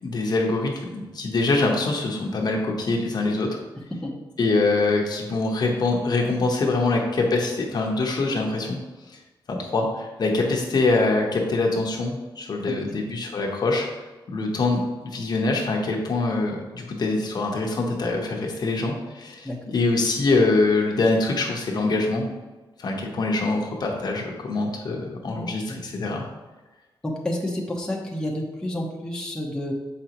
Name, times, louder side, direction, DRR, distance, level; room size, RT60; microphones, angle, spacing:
voice 1, 0.0-3.6 4.4-8.8 9.5-13.9 14.3-22.3 22.8-26.2, left 3 dB, 50° left, 0 dB, 1.0 m, -24 dB
voice 2, 25.3-25.8 27.0-29.7, left 1 dB, 10° left, -3 dB, 0.9 m, -30 dB
7.0 x 5.1 x 2.9 m, 1.2 s
wide cardioid pair, 140°, 9 cm